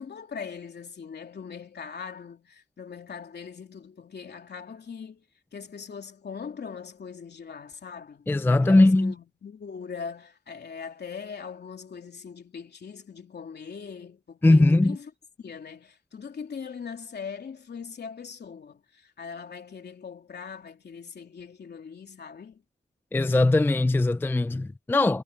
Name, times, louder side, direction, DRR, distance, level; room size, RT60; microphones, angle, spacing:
voice 1, 0.0-5.2 5.5-15.1 15.4-22.6, left 6 dB, 65° left, 3.2 m, -41 dB
voice 2, 8.3-9.1 14.4-15.0 23.1-25.2, left 2 dB, 10° left, 0.4 m, -20 dB
wide cardioid pair, 160°, 18 cm